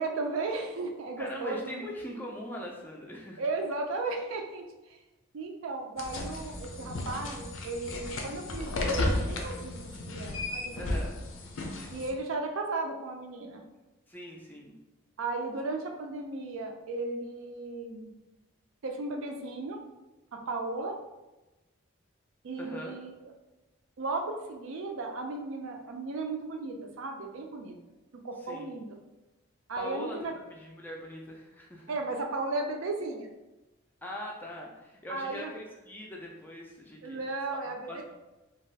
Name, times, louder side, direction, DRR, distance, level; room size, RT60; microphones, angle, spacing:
voice 1, 0.0-1.8 3.4-5.0 5.3-10.9 11.9-13.6 15.2-18.1 18.8-19.8 20.3-21.0 22.4-23.1 24.0-27.7 28.2-28.9 29.7-30.3 31.9-33.3 35.1-35.5 37.0-38.0, right 3 dB, 70° right, 3 dB, 0.4 m, -35 dB
voice 2, 1.2-3.4 10.7-11.1 14.1-14.7 22.6-22.9 28.4-28.7 29.8-30.2 30.4-32.0 34.0-37.2 37.6-38.0, left 1 dB, 10° left, -1 dB, 0.3 m, -41 dB
sound 1, 6.0-12.1, left 2 dB, 70° left, 0.5 m, -34 dB
2.6 x 2.3 x 3.2 m, 1.1 s
head